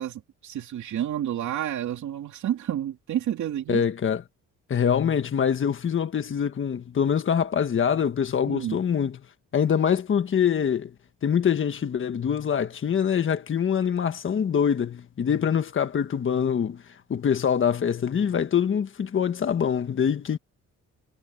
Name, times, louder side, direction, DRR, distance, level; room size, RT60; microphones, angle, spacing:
voice 1, 0.0-3.8 8.5-8.8, right 11 dB, 65° right, 2.9 m, -30 dB
voice 2, 3.7-4.2 4.7-9.2 9.5-10.9 11.2-16.8 17.1-20.4, left 8 dB, 40° left, 1.5 m, -24 dB
cardioid pair, 125°, 31 cm